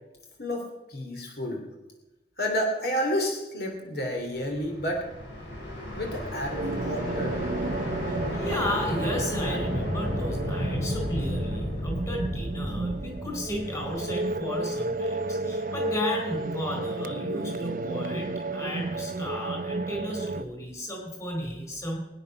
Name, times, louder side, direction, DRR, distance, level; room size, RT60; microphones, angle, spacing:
voice 1, 0.4-1.6 2.4-5.1 5.9-7.4, equal, 60° left, 2 dB, 2.8 m, -30 dB
sound 1, 4.4-14.4, equal, 85° left, 5.5 m, -33 dB
sound 2, 6.5-20.4, right 2 dB, 45° right, 0.6 m, -32 dB
voice 2, 8.0-22.0, left 1 dB, 20° left, 1 dB, 3.9 m, -34 dB
22.5 x 10.0 x 5.8 m, 1.0 s
head